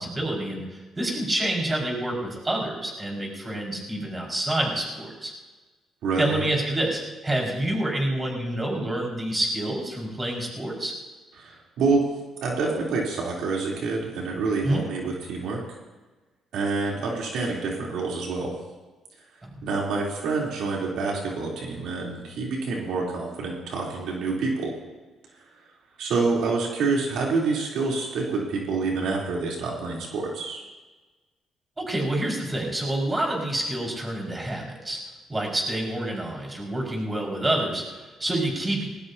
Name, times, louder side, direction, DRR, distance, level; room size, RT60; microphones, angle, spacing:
voice 1, 0.0-5.3 6.2-10.9 14.6-14.8 19.4-19.7 31.8-35.0 35.3-38.9, right 1 dB, 20° right, -1 dB, 5.6 m, -28 dB
voice 2, 6.0-6.4 11.4-12.1 12.4-15.6 16.5-18.5 19.6-24.7 26.0-30.6, right 4 dB, 80° right, -3 dB, 3.6 m, -27 dB
20.0 x 18.5 x 2.9 m, 1.2 s
cardioid pair, 90°, 0 cm